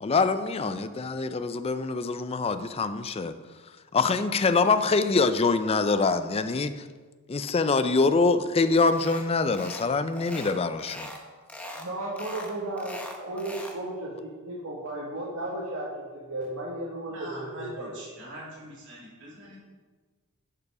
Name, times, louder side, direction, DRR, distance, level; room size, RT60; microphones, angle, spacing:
voice 1, 0.0-3.3 3.9-6.8 7.3-11.1, left 4 dB, 25° left, 11 dB, 0.4 m, -24 dB
sound 1, 8.9-9.3 9.5-9.9 10.1-11.2 11.5-11.9 12.2-13.8, left 1 dB, 5° left, 0.9 m, -41 dB
voice 2, 11.7-18.0, right 1 dB, 80° right, -5 dB, 1.8 m, -34 dB
voice 3, 17.0-19.7, right 1 dB, 55° right, -5 dB, 2.9 m, -44 dB
10.5 x 5.7 x 4.8 m, 1.4 s
head